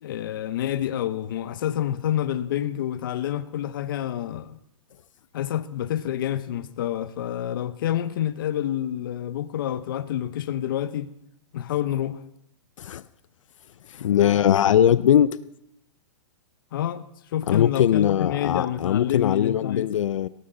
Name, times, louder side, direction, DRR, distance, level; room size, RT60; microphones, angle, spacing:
voice 1, 0.0-4.6 5.3-11.1 11.5-12.2 16.7-17.0 17.3-19.9, left 11 dB, 40° left, 0.7 m, -28 dB
voice 2, 13.9-15.3 17.5-20.3, left 10 dB, 80° left, 0.5 m, -20 dB
18.0 x 14.0 x 3.9 m
hypercardioid pair, 175°, 16 cm